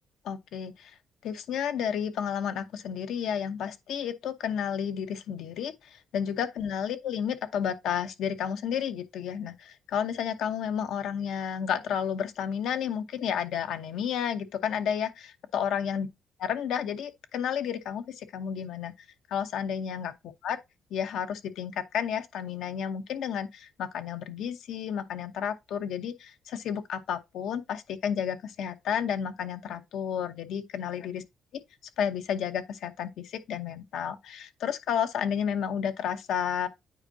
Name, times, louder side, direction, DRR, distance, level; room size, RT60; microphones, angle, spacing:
voice 1, 0.2-0.9 1.2-16.1 16.4-18.9 19.3-20.1 20.4-20.6 20.9-31.2 32.0-36.7, left 8 dB, 75° left, 0.9 m, -31 dB
8.8 x 4.5 x 2.7 m
cardioid pair, 85°, 0 cm